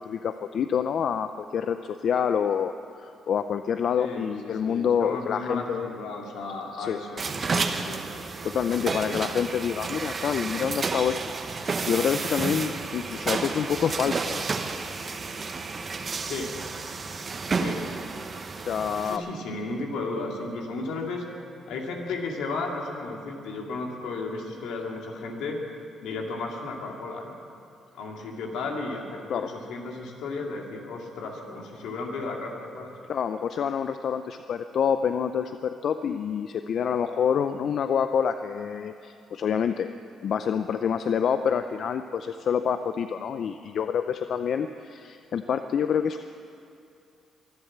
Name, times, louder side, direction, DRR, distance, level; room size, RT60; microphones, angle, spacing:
voice 1, 0.0-5.9 6.8-7.0 8.4-11.2 11.5-11.6 11.8-14.5 18.6-19.2 29.3-29.5 33.1-39.9 40.2-46.2, left 7 dB, 60° left, 9 dB, 0.5 m, -27 dB
voice 2, 4.0-8.0 9.0-9.2 16.2-16.5 17.5-17.8 19.0-21.2 21.7-25.6 26.0-27.3 27.9-32.9, left 3 dB, 85° left, 0 dB, 2.5 m, -34 dB
sound 1, 7.2-19.2, right 4 dB, 40° right, 1.1 m, -31 dB
23.5 x 8.1 x 7.3 m, 2.5 s
cardioid pair, 90°, 0 cm